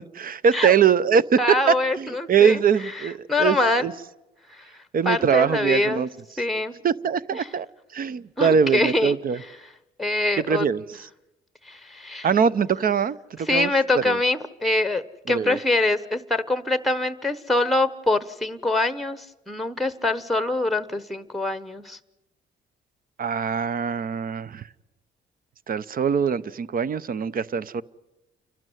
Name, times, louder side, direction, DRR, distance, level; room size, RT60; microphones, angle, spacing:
voice 1, 0.1-1.4 1.7-3.9 4.9-6.1 6.8-7.7 7.9-9.4 10.4-11.0 12.2-13.7 14.0-14.2 15.3-15.6 23.2-24.6 25.7-27.8, right 7 dB, 45° right, 17 dB, 0.7 m, -22 dB
voice 2, 1.4-3.9 4.5-4.6 5.0-6.1 6.4-6.7 7.3-7.5 8.4-9.5 10.0-10.7 11.6-12.3 13.4-22.0, left 2 dB, ahead, 13 dB, 1.0 m, -24 dB
29.0 x 12.0 x 9.2 m, 1.0 s
cardioid pair, 90°, 20 cm